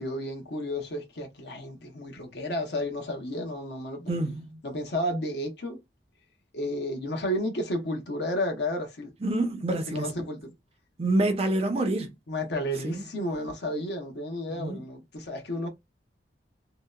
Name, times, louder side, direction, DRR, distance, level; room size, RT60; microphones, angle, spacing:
voice 1, 0.0-4.2 4.6-5.8 6.5-9.1 9.9-10.5 12.3-15.7, left 1 dB, 65° left, 0.8 m, -32 dB
voice 2, 4.1-4.6 9.2-10.2 11.0-12.1 12.8-13.0 14.6-14.8, right 2 dB, 35° right, 0.5 m, -27 dB
2.8 x 2.0 x 2.2 m
head